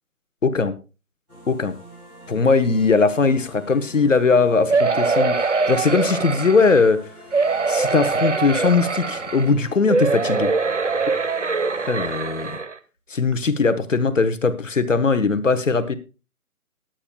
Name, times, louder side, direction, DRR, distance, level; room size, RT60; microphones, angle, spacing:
voice 1, 0.4-0.7 1.5-1.7 2.3-7.1 7.7-10.5 11.8-12.6 13.1-15.9, left 4 dB, 55° left, 11 dB, 1.1 m, -20 dB
sound 1, 1.3-12.6, equal, 10° right, 7.4 m, -45 dB
sound 2, 4.7-6.9 7.3-9.5 9.9-12.7 13.3-13.4 13.7-13.8, right 4 dB, 55° right, 0.8 m, -23 dB
20.0 x 8.9 x 2.2 m, 0.32 s
figure-of-eight pair, 175°, 44 cm